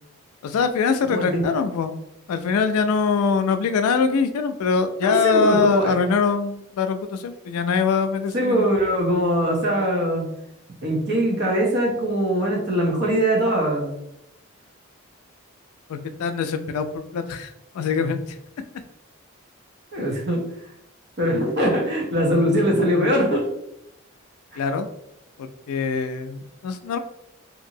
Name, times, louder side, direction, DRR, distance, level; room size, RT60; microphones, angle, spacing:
voice 1, 0.4-2.0 2.3-8.7 15.9-18.4 24.6-24.9 25.4-27.0, left 5 dB, 80° left, 10 dB, 0.3 m, -23 dB
voice 2, 1.0-1.5 5.0-6.0 8.3-10.3 10.8-14.0 19.9-20.4 21.2-23.5 24.5-24.6, right 1 dB, 50° right, -1 dB, 0.8 m, -22 dB
2.9 x 2.6 x 2.6 m, 0.78 s
head